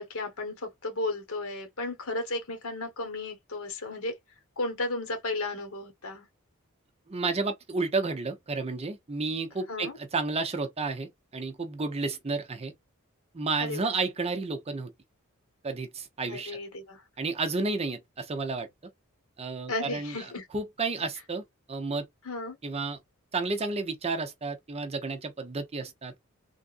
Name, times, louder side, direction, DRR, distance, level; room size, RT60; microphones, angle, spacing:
voice 1, 0.0-4.2 4.6-6.2 9.7-10.0 13.6-13.9 16.3-17.0 19.7-20.5 22.2-22.6, left 2 dB, 80° left, 1.2 m, -34 dB
voice 2, 7.1-12.7 13.3-14.9 15.6-16.6 17.2-18.7 19.4-20.2 20.5-21.4 21.7-22.1 22.6-23.0 23.3-26.2, right 3 dB, 30° right, 0.6 m, -31 dB
3.4 x 2.5 x 2.4 m
head